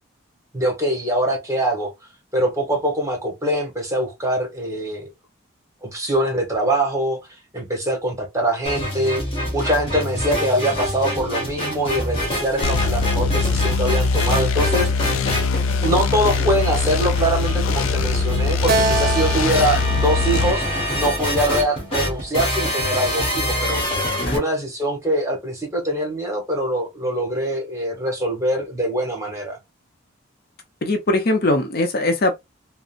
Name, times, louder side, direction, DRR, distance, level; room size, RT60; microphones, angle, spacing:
voice 1, 0.5-1.9 2.3-5.1 5.8-7.2 7.5-9.2 9.5-15.1 15.4-15.5 15.8-23.8 24.3-29.6, right 1 dB, 15° right, 1.1 m, -23 dB
sound 1, 8.6-24.4, left 1 dB, 30° left, 1.3 m, -26 dB
sound 2, 12.6-20.5, left 4 dB, 90° left, 0.4 m, -22 dB
Keyboard (musical), 18.7-22.1, right 3 dB, 50° right, 0.5 m, -27 dB
voice 2, 30.8-32.3, left 2 dB, 50° left, 0.6 m, -20 dB
3.7 x 2.0 x 2.5 m
head